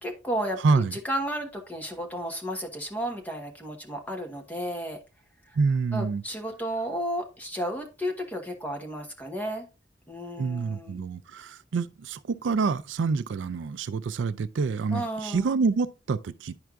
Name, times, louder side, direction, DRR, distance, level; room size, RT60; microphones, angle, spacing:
voice 1, 0.0-5.0 5.9-9.7 10.1-11.0 14.9-15.5, equal, 10° left, 1.1 m, -33 dB
voice 2, 0.6-1.0 5.5-6.2 10.4-16.5, right 4 dB, 85° right, 0.4 m, -27 dB
10.5 x 4.5 x 2.4 m
head